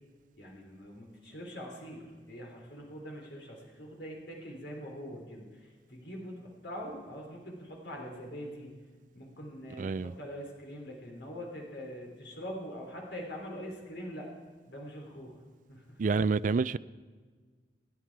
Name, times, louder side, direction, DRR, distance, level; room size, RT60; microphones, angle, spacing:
voice 1, 0.4-8.7 9.1-14.3 14.7-15.4 15.7-16.0, equal, 75° left, 0 dB, 3.4 m, -43 dB
voice 2, 9.8-10.1 16.0-16.8, right 4 dB, 45° right, 16 dB, 0.4 m, -28 dB
27.0 x 10.0 x 4.7 m, 1.5 s
head